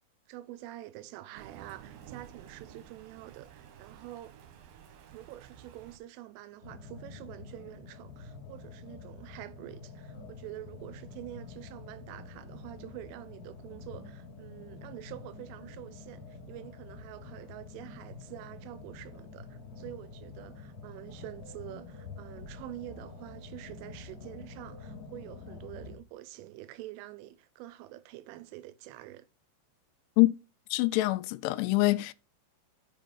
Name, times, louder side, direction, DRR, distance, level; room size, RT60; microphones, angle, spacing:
voice 1, 0.3-4.3 5.1-29.3, right 15 dB, 90° right, 3.2 m, -46 dB
Thunder, 1.3-6.0, right 9 dB, 70° right, 2.4 m, -52 dB
sound 1, 6.6-26.0, left 4 dB, 45° left, 2.3 m, -47 dB
voice 2, 30.7-32.1, left 20 dB, 85° left, 2.9 m, -25 dB
7.4 x 5.4 x 5.4 m
omnidirectional pair, 5.6 m